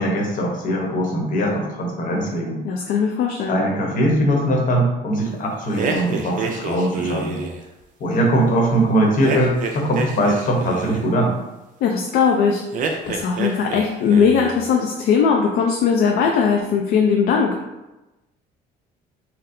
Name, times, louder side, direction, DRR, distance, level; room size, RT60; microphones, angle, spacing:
voice 1, 0.0-2.6 3.5-7.4 8.0-11.4, right 1 dB, 50° left, -1 dB, 0.9 m, -21 dB
voice 2, 2.6-3.6 11.8-12.6 13.1-17.5, left 6 dB, 70° left, 1 dB, 0.4 m, -19 dB
sound 1, 5.8-7.6 9.2-11.1 12.7-13.8 14.1-14.6, right 4 dB, 50° right, 0.5 m, -27 dB
4.2 x 2.0 x 2.6 m, 1.0 s
cardioid pair, 110°, 17 cm